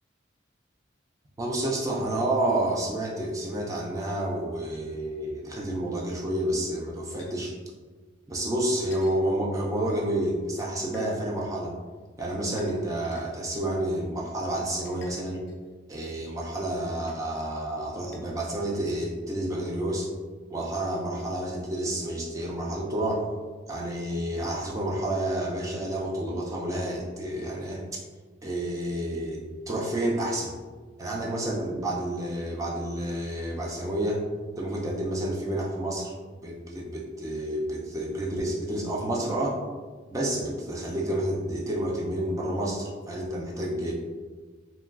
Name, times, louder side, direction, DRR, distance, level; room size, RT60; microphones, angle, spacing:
voice 1, 1.4-7.5 8.3-11.7 12.2-15.4 15.9-20.1 20.5-23.3 23.7-27.8 28.4-30.6 31.0-34.2 34.6-36.1 36.4-39.6 40.1-43.9, right 1 dB, 15° right, -2 dB, 0.3 m, -29 dB
sound 1, 7.2-7.3 8.9-9.2 10.8-11.1 12.5-13.2 14.8-15.7 17.1-17.2 18.1-18.2 19.0-19.1 20.0-20.1, left 4 dB, 75° left, 0.4 m, -52 dB
2.9 x 2.3 x 2.3 m, 1.4 s
head